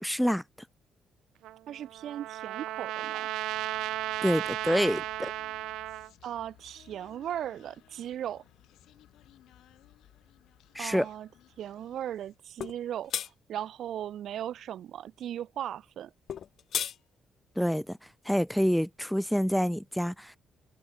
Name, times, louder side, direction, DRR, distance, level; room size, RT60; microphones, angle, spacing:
voice 1, 0.0-0.4 4.2-5.3 10.7-11.1 17.6-18.0 18.3-20.4, equal, ahead, 0.4 m, -27 dB
Trumpet, 1.4-6.1, right 15 dB, 90° right, 0.6 m, -35 dB
voice 2, 1.7-3.3 6.2-8.4 10.8-11.3 11.6-16.1, right 10 dB, 70° right, 1.2 m, -37 dB
Human voice, 3.0-12.5, left 13 dB, 85° left, 6.5 m, -60 dB
sound 1, 12.6-12.8 13.1-13.3 16.3-17.0, left 9 dB, 65° left, 1.0 m, -32 dB
cardioid pair, 90°, 0 cm